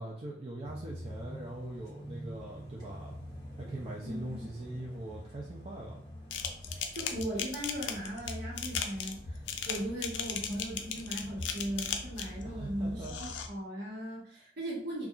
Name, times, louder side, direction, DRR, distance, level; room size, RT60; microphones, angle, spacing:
voice 1, 0.0-3.2 3.6-6.0 12.4-13.2, right 1 dB, 35° right, -3 dB, 0.4 m, -42 dB
sound 1, 0.6-13.5, left 1 dB, 25° left, 1.2 m, -45 dB
voice 2, 4.0-4.4 6.9-9.4 9.6-15.1, right 1 dB, 65° right, -4 dB, 1.1 m, -38 dB
sound 2, 6.3-12.4 13.0-13.5, left 7 dB, 90° left, 0.4 m, -36 dB
2.7 x 2.3 x 2.4 m, 0.62 s
head